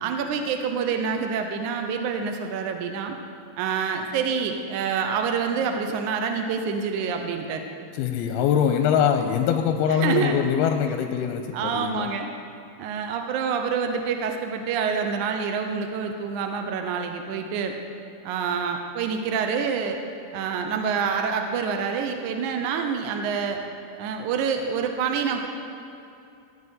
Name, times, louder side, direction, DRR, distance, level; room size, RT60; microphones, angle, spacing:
voice 1, 0.0-3.2 3.6-7.6 10.0-10.3 11.5-12.3 12.8-17.8 18.2-20.0 20.3-23.6 24.0-25.5, right 6 dB, 75° right, 4 dB, 1.9 m, -27 dB
voice 2, 7.9-12.1, left 8 dB, 85° left, 5 dB, 2.5 m, -23 dB
15.5 x 5.4 x 9.4 m, 2.7 s
omnidirectional pair, 4.4 m